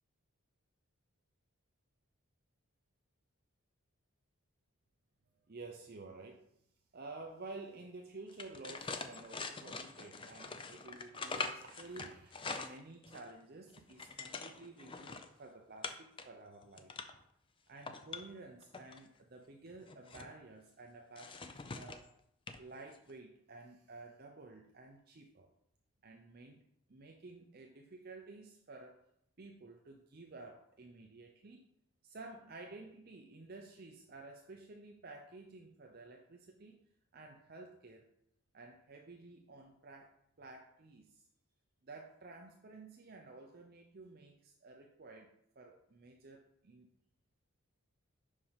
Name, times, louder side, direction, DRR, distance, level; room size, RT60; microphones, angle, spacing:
voice 1, 5.5-6.5 6.9-16.9 17.7-22.1 22.6-25.5 26.0-26.6 26.9-29.0 29.4-31.7 32.0-36.8 37.1-38.1 38.5-41.3 41.8-46.9, right 3 dB, 40° right, 1 dB, 0.6 m, -52 dB
sound 1, 8.3-13.3 13.7-15.3 15.8-16.2 16.6-17.2 17.7-19.0 19.7-20.3 21.2-22.1 22.5-22.6 22.9-23.1, left 4 dB, 25° left, 0.4 m, -44 dB
5.4 x 4.8 x 5.7 m, 0.73 s
head